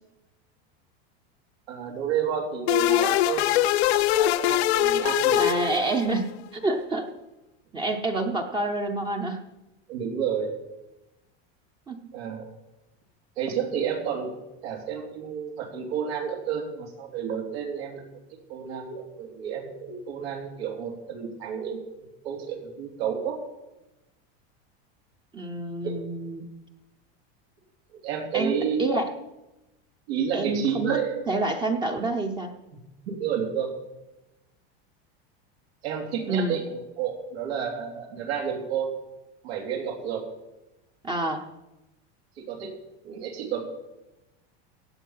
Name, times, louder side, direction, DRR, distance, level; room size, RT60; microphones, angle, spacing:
voice 1, 1.7-5.4 9.9-10.5 12.1-12.5 13.4-14.3 14.6-23.4 25.8-26.0 28.0-28.9 30.1-31.2 32.7-32.8 33.1-33.7 35.8-38.9 39.4-40.3 42.4-42.7 43.0-43.6, right 7 dB, 90° right, 1 dB, 3.2 m, -31 dB
sound 1, 2.7-6.3, left 14 dB, 85° left, 0.7 m, -22 dB
voice 2, 5.3-7.1 7.7-9.4 11.9-12.0 25.3-26.5 28.3-29.0 30.3-32.5 36.2-36.6 41.0-41.4, right 2 dB, 15° right, 4 dB, 0.7 m, -28 dB
16.0 x 8.4 x 5.6 m, 0.98 s
supercardioid pair, 165°, 31 cm